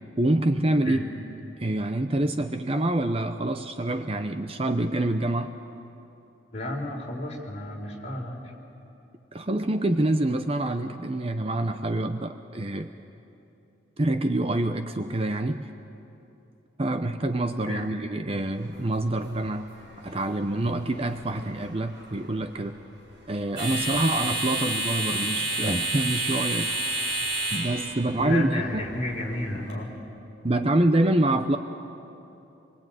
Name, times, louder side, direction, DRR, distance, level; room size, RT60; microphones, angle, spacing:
voice 1, 0.2-1.1 1.6-5.6 9.3-12.9 14.0-15.7 16.8-19.7 20.0-22.7 23.3-26.7 27.5-28.8 30.4-31.6, right 1 dB, 30° right, 8 dB, 0.7 m, -26 dB
voice 2, 6.5-8.4 17.7-17.8 28.2-29.9, left 1 dB, 35° left, -1 dB, 4.2 m, -31 dB
sound 1, 18.4-29.7, right 2 dB, 60° right, 6.4 m, -32 dB
26.0 x 23.5 x 9.2 m, 2.8 s
head